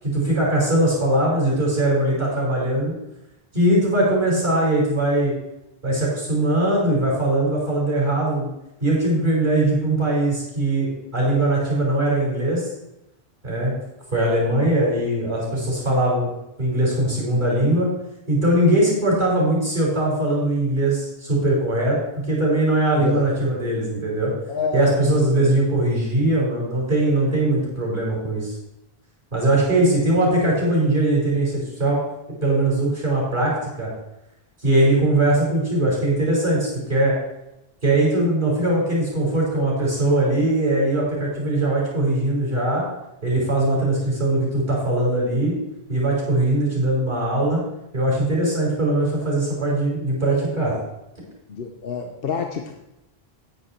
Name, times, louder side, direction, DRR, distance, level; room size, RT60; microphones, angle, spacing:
voice 1, 0.0-2.9 3.5-5.3 5.8-8.5 8.8-12.6 13.4-13.8 14.1-16.3 16.6-17.9 18.3-24.3 24.7-28.5 29.3-32.0 32.4-33.9 34.6-37.2 37.8-42.9 43.2-45.6 45.9-47.6 47.9-50.8, right 1 dB, 45° right, -4 dB, 5.0 m, -21 dB
voice 2, 24.5-25.0 25.4-25.5 51.5-52.7, left 5 dB, 65° left, 3 dB, 1.1 m, -27 dB
9.5 x 9.5 x 4.4 m, 0.89 s
omnidirectional pair, 1.0 m